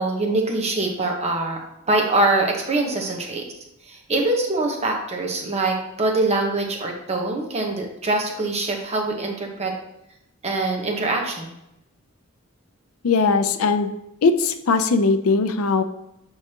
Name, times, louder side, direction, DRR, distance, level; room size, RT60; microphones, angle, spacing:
voice 1, 0.0-1.6 1.9-3.5 3.9-9.7 10.4-11.5, right 2 dB, 30° right, 1 dB, 1.1 m, -23 dB
voice 2, 13.0-13.9 14.2-15.8, left 4 dB, 90° left, 9 dB, 0.5 m, -19 dB
8.1 x 4.8 x 2.9 m, 0.85 s
head